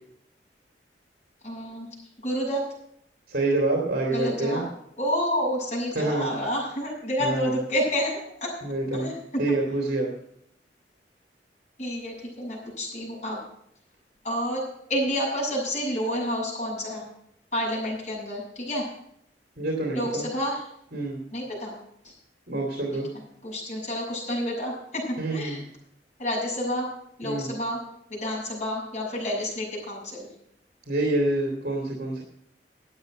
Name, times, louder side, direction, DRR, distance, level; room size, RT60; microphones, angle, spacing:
voice 1, 1.4-1.9 2.2-2.6 4.1-4.6 5.0-8.5 8.9-9.5 11.8-13.4 14.2-14.6 14.9-17.0 17.5-18.8 19.9-20.6 21.3-21.7 22.0-22.1 23.4-25.6 26.2-26.9 27.2-27.8 28.1-30.3, equal, 45° left, -4 dB, 6.9 m, -29 dB
voice 2, 3.3-4.6 5.9-6.3 7.2-7.6 8.6-9.1 9.4-10.1 19.6-20.3 20.9-21.2 22.5-23.1 25.2-25.6 27.2-27.5 30.9-32.2, right 2 dB, 60° right, -1 dB, 2.7 m, -27 dB
12.0 x 8.7 x 6.5 m, 0.72 s
head